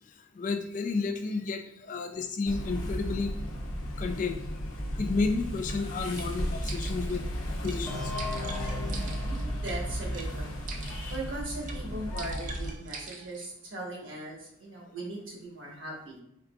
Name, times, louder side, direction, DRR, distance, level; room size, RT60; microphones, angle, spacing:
voice 1, 0.4-3.3 4.0-4.4 5.0-7.2 7.6-8.0, left 4 dB, 40° left, 7 dB, 0.3 m, -31 dB
sound 1, 2.5-12.7, equal, 90° left, 0.9 m, -34 dB
sound 2, 5.7-5.8 6.2-6.3 6.6-7.2 7.6-7.8 8.2-9.8 10.1-10.3 10.7-11.2 11.6-11.8 12.2-13.4, right 4 dB, 40° right, 0.4 m, -43 dB
sound 3, 7.9-11.4, left 2 dB, 5° left, 0.9 m, -38 dB
voice 2, 8.8-10.5 11.1-16.2, right 2 dB, 65° right, -2 dB, 1.2 m, -39 dB
4.7 x 3.6 x 2.3 m, 0.74 s
head